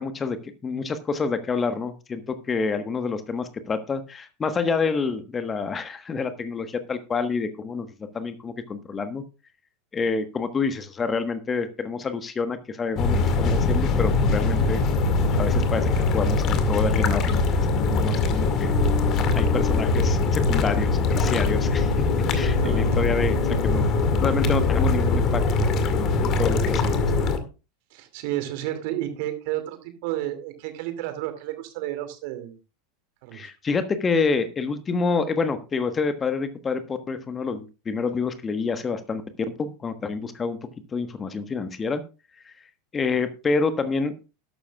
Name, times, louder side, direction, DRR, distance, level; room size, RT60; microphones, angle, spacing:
voice 1, 0.0-7.9 8.1-9.2 9.9-14.8 15.4-18.8 19.3-21.9 22.3-23.9 24.2-27.0 33.3-39.2 39.6-42.0 42.4-42.5 42.9-44.2, left 4 dB, 20° left, 10 dB, 1.3 m, -28 dB
sound 1, 13.0-27.4, left 3 dB, 40° left, 2.1 m, -22 dB
voice 2, 22.2-23.0 27.9-29.8 30.0-32.6 33.2-33.4, right 14 dB, 55° right, 8 dB, 2.5 m, -31 dB
12.5 x 12.0 x 2.4 m, 0.31 s
figure-of-eight pair, 85°, 0 cm